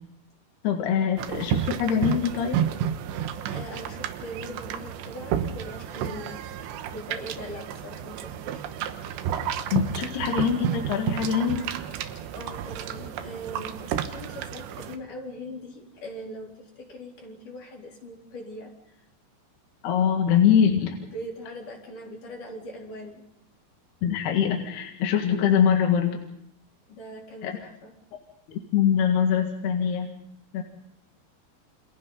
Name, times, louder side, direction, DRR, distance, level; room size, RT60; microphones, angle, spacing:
voice 1, 0.6-2.6 9.7-11.7 19.8-21.0 24.0-26.2 27.4-27.5 28.5-30.2 30.5-30.6, left 8 dB, 70° left, 2 dB, 3.8 m, -23 dB
sound 1, 1.2-15.0, right 9 dB, 80° right, 3.3 m, -31 dB
voice 2, 3.5-6.6 6.9-8.7 12.3-18.7 21.0-23.3 26.9-27.9, equal, 50° left, 0 dB, 4.9 m, -41 dB
30.0 x 28.0 x 4.0 m, 0.70 s
omnidirectional pair, 5.1 m